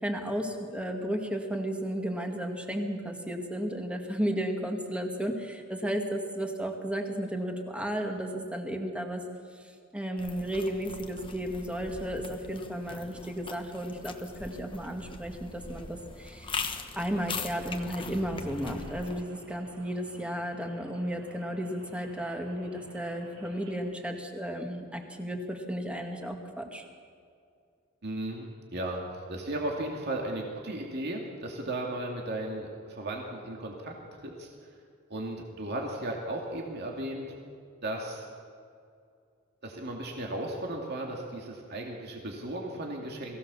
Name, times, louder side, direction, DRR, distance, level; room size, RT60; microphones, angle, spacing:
voice 1, 0.0-9.2 9.9-16.6 16.9-26.8, equal, 5° right, 3 dB, 2.0 m, -33 dB
sound 1, 10.2-19.2, left 4 dB, 25° left, 1.2 m, -41 dB
Rain, 16.9-23.8, right 1 dB, 70° right, 4.3 m, -53 dB
voice 2, 28.0-29.0 29.3-33.9 34.2-34.5 35.1-37.2 37.8-38.3 39.6-43.4, right 1 dB, 55° right, 0 dB, 2.5 m, -35 dB
22.5 x 16.5 x 7.1 m, 2.3 s
head